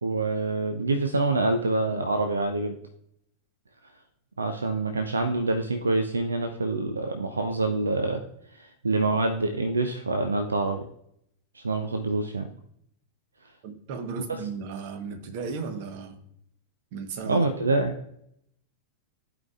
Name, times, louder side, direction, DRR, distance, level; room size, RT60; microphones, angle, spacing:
voice 1, 0.0-2.7 4.4-8.2 8.5-10.8 11.5-12.5 17.3-17.9, right 2 dB, 75° right, 0.5 m, -26 dB
voice 2, 13.6-16.2 16.9-17.4, right 5 dB, 50° right, 1.0 m, -35 dB
14.5 x 5.0 x 2.4 m
figure-of-eight pair, 90°, 0 cm